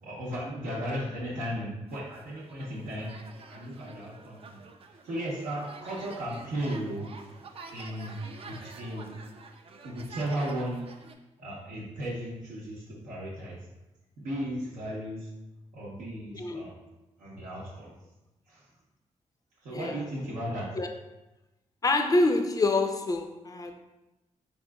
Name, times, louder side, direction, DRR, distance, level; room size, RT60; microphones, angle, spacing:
voice 1, 0.0-3.1 3.5-4.6 5.0-7.1 7.7-8.2 8.5-9.1 9.8-10.8 11.4-13.6 14.2-15.3 15.7-16.7 17.2-17.9 18.5-18.6 19.6-20.7, right 1 dB, 85° right, -7 dB, 0.7 m, -35 dB
sound 1, 1.9-11.1, right 4 dB, 45° right, 0.4 m, -48 dB
voice 2, 16.3-16.6 19.7-20.0 20.7-20.9 21.8-23.8, left 2 dB, 25° left, 5 dB, 0.4 m, -26 dB
3.6 x 2.8 x 2.2 m, 1.0 s
cardioid pair, 55°, 13 cm